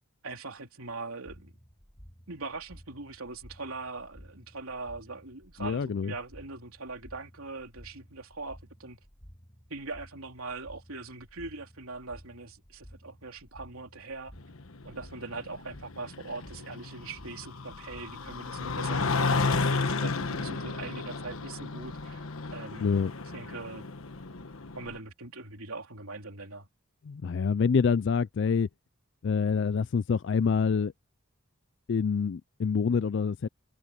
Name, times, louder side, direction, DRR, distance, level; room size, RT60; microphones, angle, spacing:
voice 1, 0.2-1.5 2.3-9.0 9.7-14.3 14.8-22.2 22.5-22.9 23.3-23.9 24.7-26.7, right 3 dB, 80° right, 3.4 m, -41 dB
sound 1, 1.2-19.3, equal, 20° left, 3.3 m, -54 dB
voice 2, 5.6-6.1 22.8-23.1 27.1-28.7 29.2-30.9 31.9-33.5, left 5 dB, 55° left, 0.4 m, -26 dB
sound 2, 14.4-25.0, left 4 dB, 75° left, 1.2 m, -33 dB
head